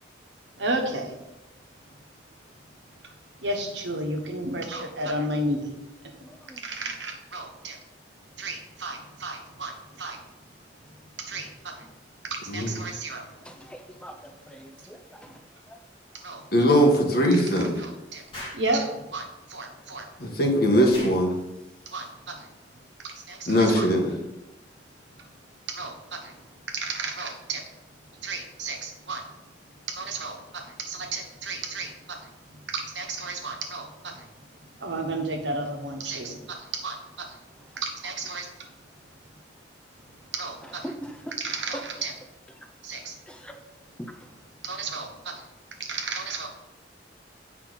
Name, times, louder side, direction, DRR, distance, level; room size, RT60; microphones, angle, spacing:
voice 1, 0.6-1.1 2.5-2.6 3.0-3.1 3.4-5.7 6.6-7.8 8.4-10.2 11.2-11.9 12.2-13.3 16.1-16.4 17.4-17.5 17.8-18.2 18.5-20.1 21.8-22.5 23.3-23.9 25.1-25.3 25.7-27.7 28.2-29.4 29.9-34.3 34.7-37.4 37.8-38.7 40.2-40.9 41.4-42.1 42.8-43.1 44.6-45.4 45.7-46.5, right 2 dB, 80° right, 4 dB, 1.3 m, -33 dB
voice 2, 6.2-6.6 13.4-15.8 40.8-41.3 41.7-41.8 43.3-43.6 44.0-44.3, equal, 5° left, 4 dB, 0.5 m, -41 dB
voice 3, 16.5-17.7 20.2-21.3 23.5-24.1, equal, 55° left, 1 dB, 1.5 m, -20 dB
Explosion, 18.3-18.7 20.9-21.2, left 1 dB, 30° left, 2.6 m, -38 dB
8.2 x 5.6 x 4.1 m, 0.94 s
head